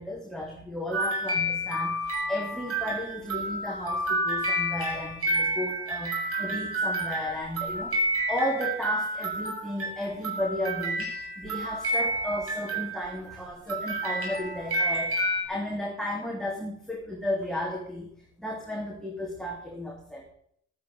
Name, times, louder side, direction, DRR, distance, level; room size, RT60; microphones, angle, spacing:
voice 1, 0.0-18.1 18.4-20.2, left 1 dB, ahead, -1 dB, 3.4 m, -34 dB
sound 1, 0.9-13.4 13.7-15.4, right 1 dB, 50° right, 7.9 m, -30 dB
12.0 x 10.0 x 8.9 m, 0.66 s
cardioid pair, 90°, 30 cm